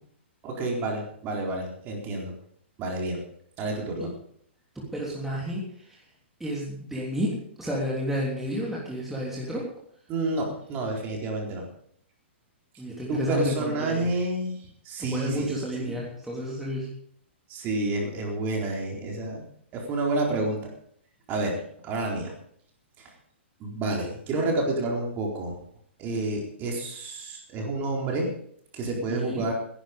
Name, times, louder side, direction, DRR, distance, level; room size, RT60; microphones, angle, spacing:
voice 1, 0.4-2.3 2.8-3.2 3.6-4.1 10.1-11.7 13.1-14.6 14.8-16.0 17.5-19.4 19.7-20.7 21.3-22.3 23.0-23.1 23.6-25.5 26.0-28.3 28.7-29.5, right 2 dB, 30° right, 0 dB, 4.2 m, -29 dB
voice 2, 4.7-5.6 6.4-9.6 12.8-14.1 15.0-16.9 29.1-29.5, equal, 5° right, -4 dB, 3.3 m, -31 dB
17.0 x 11.0 x 5.2 m, 0.64 s
hypercardioid pair, 140°, 7 cm